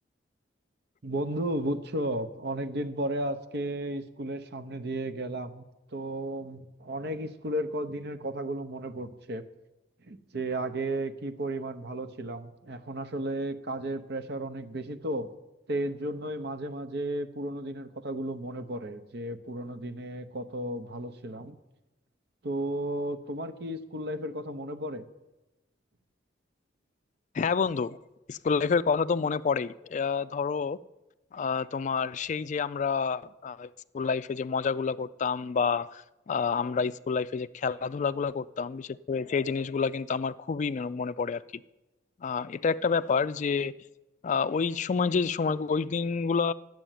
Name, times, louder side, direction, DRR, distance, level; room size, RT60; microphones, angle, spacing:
voice 1, 1.0-5.6 5.9-9.5 10.0-15.3 15.7-21.6 22.4-25.0, right 1 dB, 60° right, 10 dB, 0.8 m, -34 dB
voice 2, 27.3-28.0 28.3-30.8 31.3-33.7 33.9-41.6 42.2-43.7 44.2-46.5, left 5 dB, 40° left, 15 dB, 0.3 m, -28 dB
11.5 x 7.7 x 9.1 m, 1.0 s
head